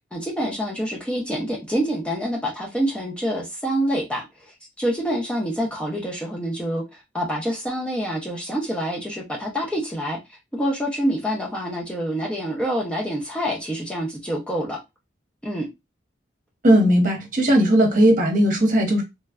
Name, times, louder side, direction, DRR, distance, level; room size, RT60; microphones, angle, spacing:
voice 1, 0.1-14.8 15.4-15.7, equal, 5° left, 0.5 m, -27 dB
voice 2, 16.6-19.0, right 1 dB, 45° right, 1.0 m, -17 dB
3.1 x 2.3 x 2.3 m
head